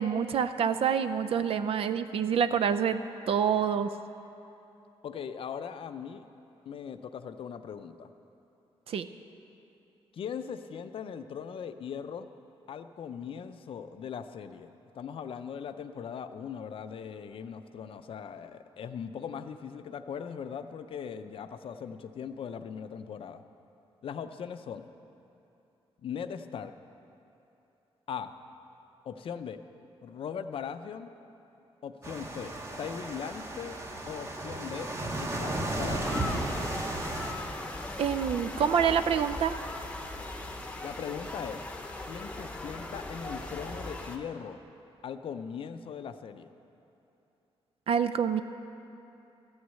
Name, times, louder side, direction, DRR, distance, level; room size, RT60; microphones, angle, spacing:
voice 1, 0.0-3.9 8.9-9.1 38.0-39.6 47.9-48.4, right 7 dB, 65° right, 11 dB, 0.4 m, -27 dB
voice 2, 5.0-6.3 6.7-8.1 10.1-12.3 12.7-23.4 24.0-24.9 26.0-26.7 28.1-28.3 29.0-29.6 30.0-31.1 31.8-32.5 32.8-33.8 34.1-34.9 35.2-36.2 40.8-41.7 42.1-44.6 45.0-46.5, left 7 dB, 60° left, 10 dB, 0.5 m, -39 dB
sound 1, 32.0-37.3, right 1 dB, 25° right, 1.1 m, -34 dB
sound 2, 36.0-44.2, left 2 dB, 10° left, 0.8 m, -39 dB
13.5 x 6.4 x 8.2 m, 2.8 s
wide cardioid pair, 155°, 10 cm